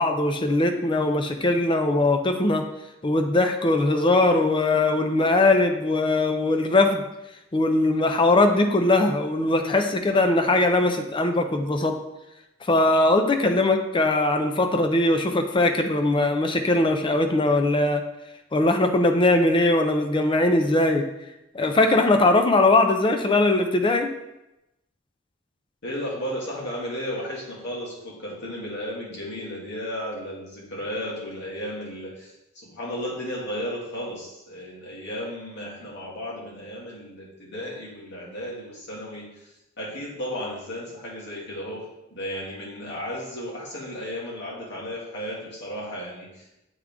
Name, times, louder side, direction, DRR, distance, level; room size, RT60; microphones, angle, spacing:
voice 1, 0.0-2.6 3.0-7.0 7.5-11.9 12.6-18.0 18.5-21.0 21.5-24.1, left 2 dB, 25° left, 5 dB, 0.5 m, -20 dB
voice 2, 25.8-39.5 39.8-46.6, equal, 60° left, -5 dB, 2.0 m, -34 dB
7.9 x 3.6 x 3.5 m, 0.92 s
head